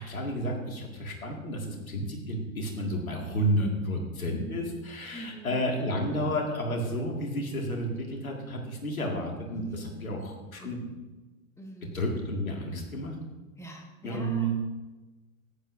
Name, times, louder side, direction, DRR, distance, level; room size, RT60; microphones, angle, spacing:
voice 1, 0.0-10.8 11.9-13.2 14.0-14.5, equal, 80° left, 1 dB, 2.2 m, -31 dB
voice 2, 5.1-5.6 9.5-10.1 10.6-10.9 11.6-12.0 13.6-14.5, equal, 5° left, 2 dB, 1.7 m, -45 dB
14.0 x 10.0 x 2.7 m, 1.2 s
figure-of-eight pair, 95°, 41 cm